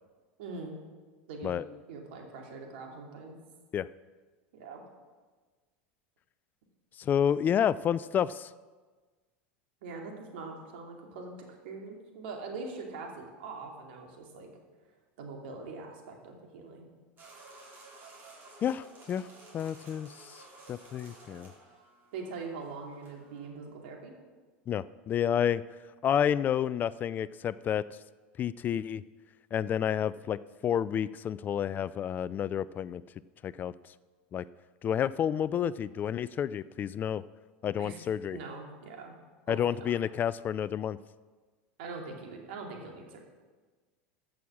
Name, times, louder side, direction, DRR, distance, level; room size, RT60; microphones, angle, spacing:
voice 1, 0.4-0.8 1.3-1.5 1.9-3.4 4.5-4.8 9.8-14.5 15.2-16.9 22.1-24.1 37.8-38.0 38.3-39.1 39.5-39.9 41.8-43.2, right 4 dB, 75° right, 1 dB, 2.6 m, -42 dB
voice 2, 7.0-8.5 18.6-19.3 19.5-20.4 20.7-21.5 24.7-25.6 26.0-27.8 28.4-29.0 29.5-33.0 33.4-33.7 34.3-34.5 34.8-37.2 37.6-38.4 39.5-41.0, left 9 dB, 30° left, 18 dB, 0.3 m, -30 dB
sound 1, 17.2-23.5, right 2 dB, 35° right, 3.9 m, -54 dB
14.5 x 6.3 x 6.1 m, 1.4 s
hypercardioid pair, 100°, 6 cm